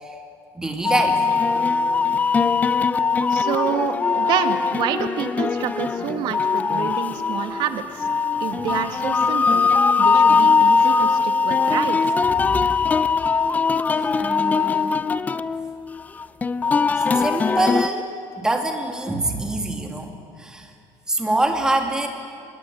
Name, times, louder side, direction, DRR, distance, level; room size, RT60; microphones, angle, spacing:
voice 1, 0.6-1.2 8.6-8.7 12.4-12.7 14.2-15.0 17.0-18.1 18.4-20.1 20.4-20.7 21.1-22.1, right 2 dB, 10° right, 3 dB, 2.6 m, -25 dB
sound 1, 0.8-17.9, left 5 dB, 15° left, 0.5 m, -20 dB
voice 2, 3.3-8.1 8.4-9.6 10.0-12.0, right 9 dB, 55° right, 8 dB, 1.8 m, -28 dB
26.5 x 20.0 x 9.4 m, 2.4 s
cardioid pair, 155°, 9 cm